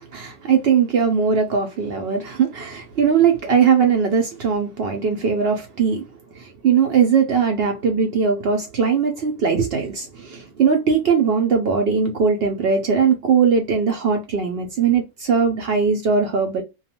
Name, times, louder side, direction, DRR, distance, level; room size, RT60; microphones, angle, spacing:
voice 1, 0.0-6.0 6.3-16.6, right 6 dB, 70° right, 0.5 m, -20 dB
2.3 x 2.3 x 2.7 m
omnidirectional pair, 1.7 m